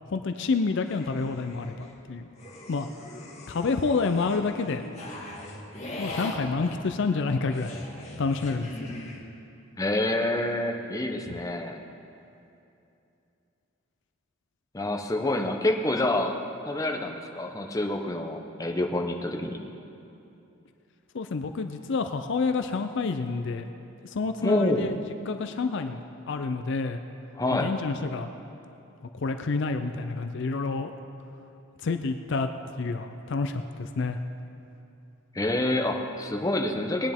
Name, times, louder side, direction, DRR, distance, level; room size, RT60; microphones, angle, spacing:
voice 1, 0.1-2.3 2.7-2.9 3.5-4.8 6.0-7.8 8.2-8.9 21.1-23.6 24.1-25.0 25.3-27.0 27.5-28.3 29.2-30.9 31.8-32.5 32.8-34.2, left 4 dB, 60° left, 8 dB, 0.5 m, -28 dB
sound 1, 0.9-1.9 2.4-9.2, left 1 dB, 35° left, 1.6 m, -41 dB
voice 2, 9.8-11.8 14.7-16.3 16.7-19.6 24.4-24.9 27.3-27.7 35.3-37.1, left 1 dB, 15° left, 2 dB, 0.8 m, -27 dB
19.5 x 10.0 x 3.6 m, 2.8 s
head